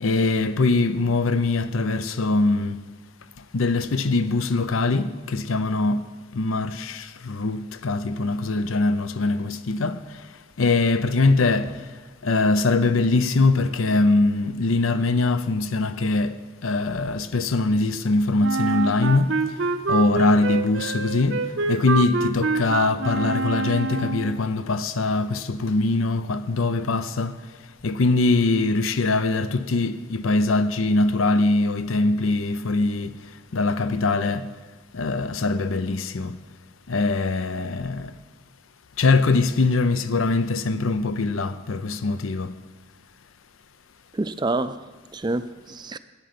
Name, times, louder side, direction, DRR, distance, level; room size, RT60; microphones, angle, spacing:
voice 1, 0.0-2.8 3.5-6.1 6.3-10.0 10.6-11.8 12.2-19.3 19.9-27.4 27.8-33.2 33.5-34.5 34.9-36.3 36.9-38.1 39.0-42.5, left 3 dB, 90° left, 0.6 m, -22 dB
Wind instrument woodwind instrument, 18.4-24.4, right 3 dB, 65° right, 0.6 m, -26 dB
voice 2, 44.1-46.0, right 2 dB, 20° right, 0.4 m, -28 dB
14.5 x 9.1 x 5.8 m
head